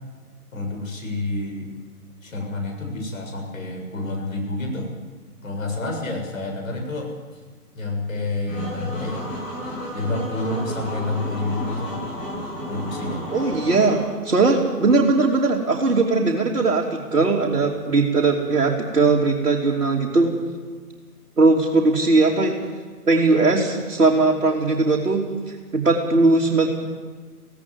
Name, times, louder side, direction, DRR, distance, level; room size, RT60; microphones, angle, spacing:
voice 1, 0.5-1.7 2.2-4.9 5.4-7.1 7.7-9.3 9.9-12.0 12.7-13.2, left 2 dB, 55° left, 1 dB, 7.2 m, -28 dB
sound 1, 8.5-14.0, equal, 15° left, 7.4 m, -32 dB
voice 2, 13.3-20.3 21.4-22.5 23.1-25.4 25.7-26.7, right 3 dB, 60° right, -2 dB, 3.3 m, -19 dB
17.5 x 16.5 x 9.6 m, 1.5 s
figure-of-eight pair, 145°, 47 cm